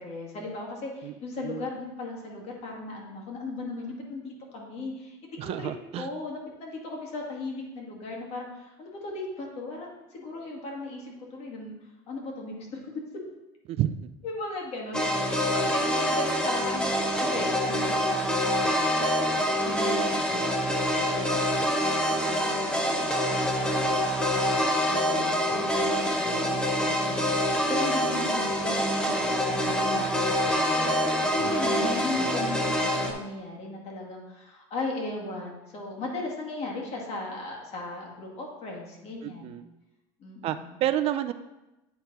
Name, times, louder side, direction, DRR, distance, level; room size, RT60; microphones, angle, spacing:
voice 1, 0.0-5.7 6.0-11.7 12.1-12.8 14.2-16.9 17.2-18.9 19.6-24.5 24.9-39.5 40.2-40.8, left 2 dB, 50° left, -1 dB, 2.1 m, -37 dB
voice 2, 5.4-6.1 13.7-14.1 31.4-31.6 39.2-39.6 40.4-41.3, right 12 dB, 45° right, 10 dB, 0.4 m, -30 dB
sound 1, 14.9-33.1, equal, 5° left, 0.9 m, -26 dB
9.1 x 4.1 x 4.1 m, 0.99 s
supercardioid pair, 115°, 14 cm